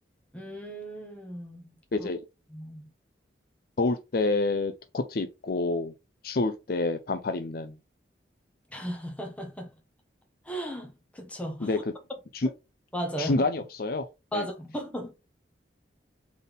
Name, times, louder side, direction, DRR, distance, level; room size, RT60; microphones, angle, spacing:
voice 1, 0.3-2.1 2.5-2.9 8.7-9.7 10.4-11.7 12.9-13.4 14.3-15.1, right 1 dB, 5° left, 1.1 m, -36 dB
voice 2, 3.8-5.9 6.2-7.8 11.6-11.8 12.3-12.5 13.2-14.1 14.3-14.5, left 3 dB, 55° left, 0.5 m, -28 dB
4.1 x 3.6 x 3.6 m
head